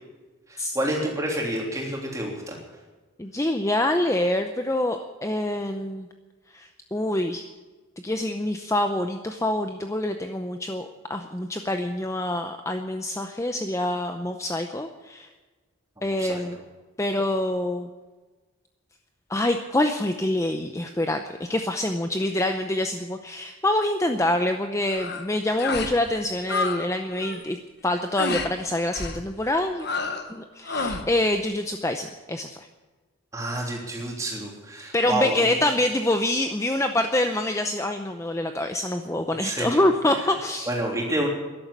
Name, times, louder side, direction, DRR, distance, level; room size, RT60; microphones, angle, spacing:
voice 1, 0.5-2.6 16.1-16.5 33.3-35.6 39.4-39.7 40.2-40.3 40.7-41.3, right 1 dB, 15° right, -1 dB, 3.3 m, -29 dB
voice 2, 3.2-6.1 6.5-7.4 8.0-15.3 16.0-16.6 17.0-17.9 19.3-27.6 27.8-29.9 30.3-32.6 34.9-40.7, left 1 dB, 15° left, 6 dB, 0.6 m, -26 dB
sound 1, 24.9-25.3 25.6-26.0 26.2-26.8 27.1-27.4 28.2-28.5 28.9-29.2 29.8-30.3 30.6-31.1, left 3 dB, 50° left, 1.3 m, -29 dB
13.5 x 11.5 x 8.5 m, 1.3 s
head